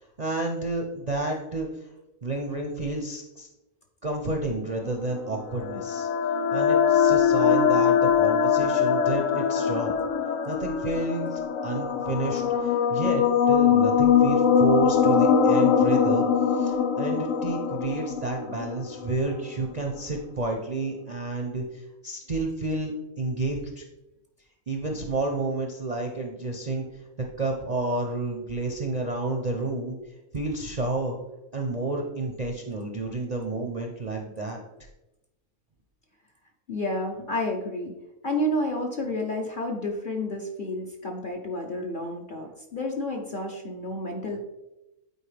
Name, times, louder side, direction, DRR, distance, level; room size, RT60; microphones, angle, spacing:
voice 1, 0.2-1.9 2.2-3.5 4.0-6.1 6.5-9.9 10.5-22.9 23.2-23.8 24.7-27.1 27.4-30.0 30.3-31.2 31.5-34.6, right 2 dB, 45° right, 1 dB, 0.5 m, -30 dB
sound 1, 5.1-19.2, left 7 dB, 70° left, 0.9 m, -22 dB
voice 2, 36.7-37.9 38.2-44.5, left 1 dB, 45° left, 1 dB, 0.7 m, -30 dB
9.0 x 4.5 x 3.3 m, 0.96 s
omnidirectional pair, 1.6 m